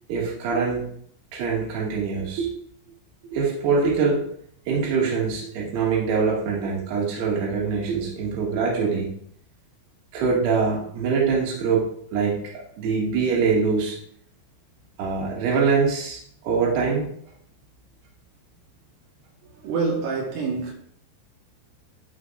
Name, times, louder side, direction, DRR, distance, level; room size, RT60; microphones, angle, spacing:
voice 1, 0.1-0.9 1.3-2.5 3.3-4.2 4.7-9.1 10.1-14.0 15.0-17.0, right 5 dB, 60° right, 3.8 m, -24 dB
voice 2, 19.6-20.7, right 4 dB, 85° right, 4.1 m, -26 dB
12.5 x 5.7 x 2.5 m
omnidirectional pair, 5.9 m